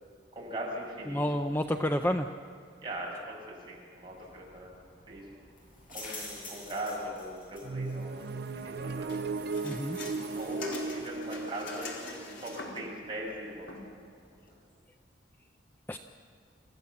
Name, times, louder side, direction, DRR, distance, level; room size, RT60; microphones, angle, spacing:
voice 1, 0.3-1.2 2.8-3.3 3.7-4.7 5.1-5.2 5.9-8.3 8.6-9.1 10.4-11.9 12.4-13.7, right 1 dB, 25° right, -3 dB, 6.0 m, -39 dB
voice 2, 1.1-2.3 9.6-10.0 15.9-16.0, equal, 10° left, 6 dB, 0.5 m, -29 dB
sound 1, 4.0-14.6, left 2 dB, 45° left, 7.9 m, -51 dB
sound 2, 7.6-13.4, right 4 dB, 55° right, 0.5 m, -37 dB
sound 3, 9.1-13.0 13.7-13.8, left 2 dB, 75° left, 4.3 m, -43 dB
27.0 x 15.5 x 7.1 m, 2.3 s
head